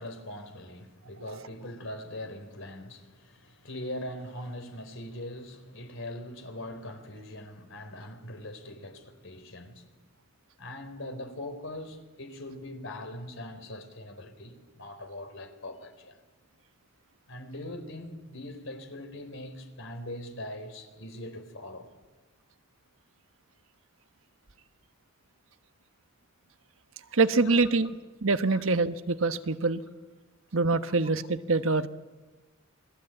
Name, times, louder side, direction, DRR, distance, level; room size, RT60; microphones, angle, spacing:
voice 1, 0.0-9.8 10.6-16.2 17.3-21.9 27.5-27.6 28.5-28.6, left 1 dB, 65° left, 4.0 m, -41 dB
voice 2, 27.1-27.9 28.2-29.8 30.5-31.9, right 3 dB, 70° right, 1.2 m, -25 dB
28.0 x 21.0 x 9.0 m
head